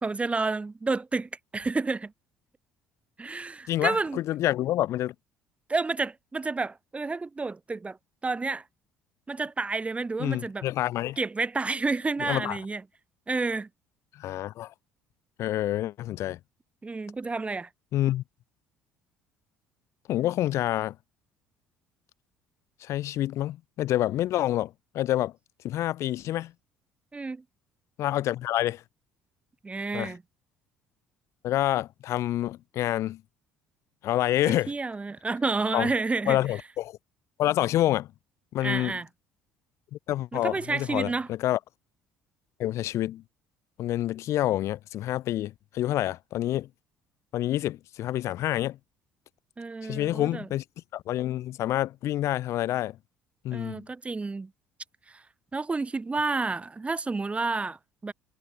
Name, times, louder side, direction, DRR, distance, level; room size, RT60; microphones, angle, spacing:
voice 1, 0.0-2.1 3.2-4.2 5.7-8.0 8.2-8.6 9.3-10.7 11.2-12.8 13.3-13.7 16.8-17.7 27.1-27.4 29.6-30.2 34.5-36.4 38.6-39.1 40.3-41.3 49.6-50.5 53.5-54.5 55.1-55.2 55.5-58.1, right 3 dB, 20° right, 2.4 m, -30 dB
voice 2, 3.7-5.1 10.2-11.2 12.2-12.6 14.1-14.7 15.4-16.4 17.9-18.2 20.1-20.9 22.8-25.3 25.6-26.5 28.0-28.8 29.9-30.1 31.4-33.2 34.0-34.7 35.7-35.9 36.3-37.0 37.4-38.1 38.5-39.0 39.9-41.6 42.6-43.2 43.8-46.7 47.3-48.8 49.8-50.6 50.9-53.0 53.4-53.8, left 14 dB, 55° left, 1.5 m, -28 dB
figure-of-eight pair, 55°, 6 cm